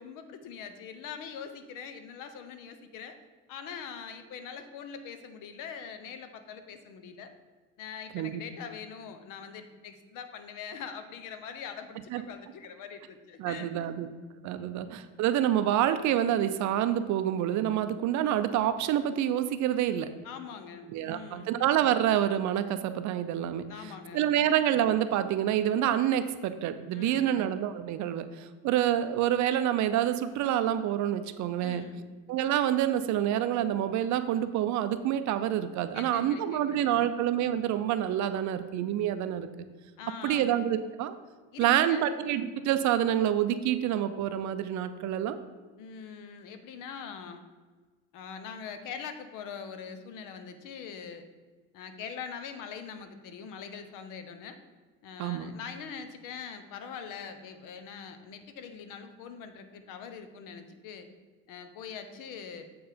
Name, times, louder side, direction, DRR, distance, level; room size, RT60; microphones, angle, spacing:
voice 1, 0.0-3.2 3.5-7.3 7.8-13.9 14.6-14.8 20.2-21.5 23.7-24.5 26.9-27.4 31.6-32.0 35.9-37.1 40.0-40.6 41.5-42.1 45.8-47.4 48.1-51.2 51.7-54.6 55.0-61.1 61.5-62.7, left 6 dB, 65° left, 9 dB, 0.8 m, -43 dB
voice 2, 13.4-14.1 14.4-20.1 20.9-23.7 24.1-31.8 32.3-39.5 40.2-41.1 41.6-45.4 55.2-55.5, right 11 dB, 55° right, 11 dB, 0.5 m, -27 dB
7.6 x 4.7 x 5.0 m, 1.4 s
cardioid pair, 155°, 35 cm